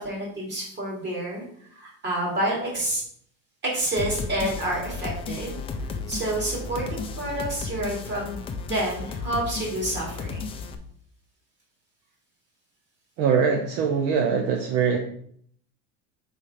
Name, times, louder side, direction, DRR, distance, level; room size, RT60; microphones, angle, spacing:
voice 1, 0.0-1.4 1.7-3.0 3.6-5.8 6.1-10.4, right 1 dB, 30° right, -2 dB, 2.7 m, -29 dB
sound 1, 4.0-10.7, left 4 dB, 15° left, 0.3 m, -34 dB
voice 2, 13.2-15.0, right 6 dB, 60° right, 2 dB, 0.9 m, -22 dB
4.9 x 4.7 x 5.6 m, 0.64 s
cardioid pair, 155°, 38 cm